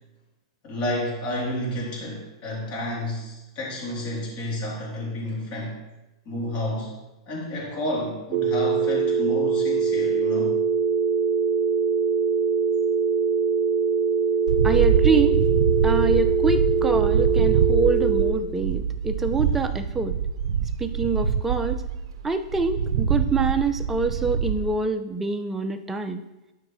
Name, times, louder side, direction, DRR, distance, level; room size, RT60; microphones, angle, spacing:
voice 1, 0.6-5.8 6.2-6.9 7.3-10.6, left 1 dB, 40° left, -5 dB, 3.0 m, -30 dB
sound 1, 8.3-18.3, right 5 dB, 35° right, 1.0 m, -23 dB
sound 2, 14.5-24.7, right 7 dB, 75° right, 0.5 m, -24 dB
voice 2, 14.6-15.4 15.8-20.2 20.8-21.8 22.2-26.2, right 4 dB, 10° right, 7 dB, 0.5 m, -25 dB
12.0 x 5.0 x 3.1 m, 1.0 s
hypercardioid pair, 130°, 3 cm